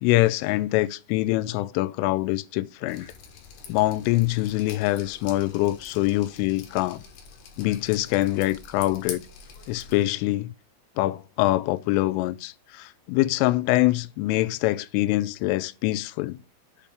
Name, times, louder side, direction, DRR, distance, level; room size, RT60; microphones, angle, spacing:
voice 1, 0.0-3.1 3.7-7.0 7.6-9.2 9.7-10.5 11.0-16.4, left 17 dB, 85° left, 2.9 m, -24 dB
Drip, 2.9-10.0, left 6 dB, 65° left, 2.6 m, -44 dB
8.3 x 3.5 x 5.8 m
omnidirectional pair, 5.9 m